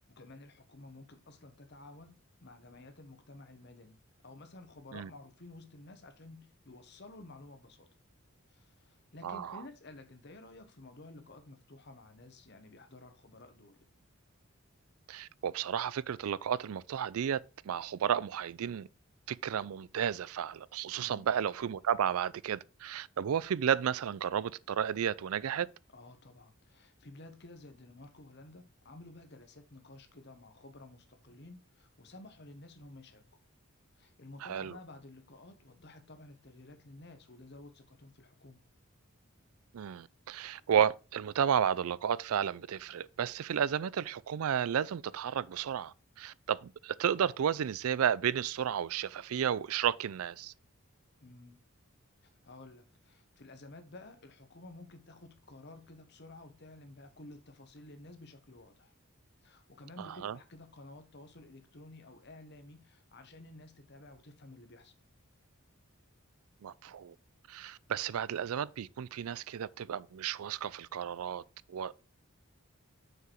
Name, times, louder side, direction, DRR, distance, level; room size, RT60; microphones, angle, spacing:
voice 1, 0.1-4.0 4.2-7.9 8.5-13.8 20.9-21.3 25.9-33.2 34.0-38.6 51.2-51.6 52.2-58.9 59.4-64.9, left 2 dB, 50° left, 1.1 m, -52 dB
voice 2, 9.2-9.6 15.1-18.9 19.3-25.7 34.4-34.8 39.7-50.5 60.0-60.4 66.6-67.1 67.5-71.4 71.7-72.0, right 8 dB, 80° right, 0.4 m, -32 dB
6.5 x 4.8 x 4.6 m
head